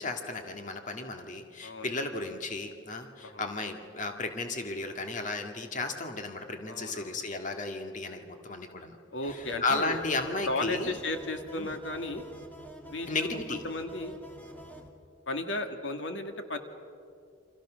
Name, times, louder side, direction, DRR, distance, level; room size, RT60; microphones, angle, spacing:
voice 1, 0.0-9.0 9.3-10.9 11.5-11.7 13.1-13.6, left 3 dB, 45° left, 4 dB, 1.8 m, -34 dB
voice 2, 1.6-2.0 3.2-3.5 6.7-7.3 9.1-10.0 10.5-12.2 12.9-14.2 15.3-16.6, left 2 dB, 75° left, 6 dB, 2.0 m, -35 dB
sound 1, 9.2-14.9, right 1 dB, 10° left, 2.3 m, -48 dB
29.5 x 26.0 x 6.3 m, 2.3 s
head